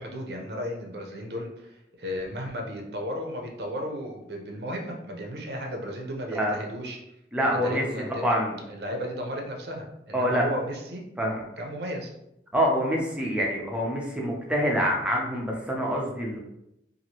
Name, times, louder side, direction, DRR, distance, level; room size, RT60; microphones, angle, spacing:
voice 1, 0.0-7.0 7.5-8.4 8.7-11.0 11.6-12.1, equal, 60° right, 1 dB, 0.6 m, -34 dB
voice 2, 7.3-7.8 8.1-8.6 10.1-10.5 11.2-11.4 12.5-16.4, equal, 5° right, -2 dB, 0.5 m, -26 dB
2.9 x 2.5 x 2.8 m, 0.84 s
head